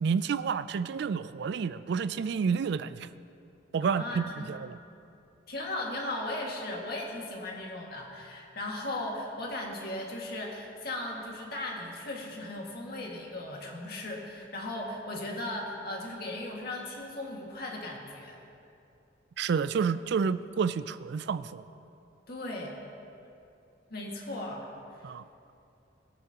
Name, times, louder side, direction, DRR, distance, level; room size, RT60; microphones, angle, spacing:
voice 1, 0.0-3.1 3.7-4.8 19.4-21.7 25.0-25.3, right 6 dB, 60° right, 14 dB, 0.3 m, -30 dB
voice 2, 3.8-4.5 5.5-18.4 22.3-22.8 23.9-24.7, left 1 dB, 55° left, -1 dB, 2.0 m, -37 dB
20.5 x 9.6 x 2.9 m, 2.7 s
head